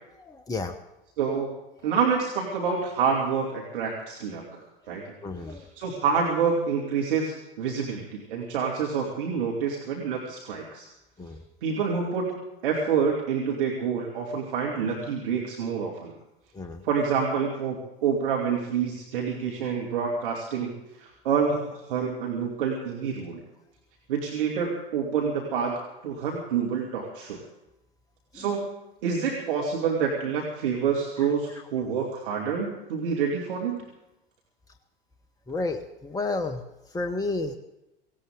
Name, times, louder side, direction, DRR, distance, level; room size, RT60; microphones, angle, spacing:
voice 1, 0.2-0.8 5.2-5.6 11.2-11.4 16.5-16.8 28.3-28.5 35.5-36.6 36.9-37.6, left 3 dB, 10° left, 6 dB, 1.0 m, -31 dB
voice 2, 1.2-1.6 1.8-4.6 4.9-5.0 5.5-10.8 11.6-12.3 12.6-16.1 16.8-17.8 18.0-20.7 21.0-23.4 24.1-27.4 28.3-28.7 29.0-33.8, right 6 dB, 65° right, -1 dB, 2.6 m, -27 dB
18.0 x 17.5 x 3.8 m, 0.93 s
figure-of-eight pair, 80°, 29 cm